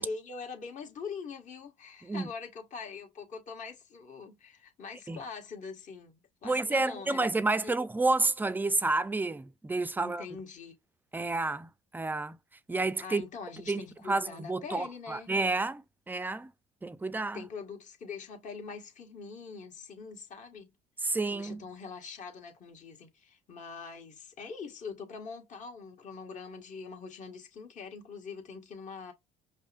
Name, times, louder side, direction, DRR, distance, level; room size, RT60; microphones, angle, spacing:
voice 1, 0.0-7.3 7.6-7.7 10.0-10.8 13.0-15.3 17.3-20.7 21.3-29.1, left 5 dB, 50° left, 1.7 m, -43 dB
voice 2, 6.4-10.2 11.1-12.4 12.7-13.2 13.7-16.5 16.8-17.4 21.0-21.6, right 3 dB, 10° right, 0.4 m, -30 dB
5.3 x 2.1 x 2.5 m
supercardioid pair, 95°, 16 cm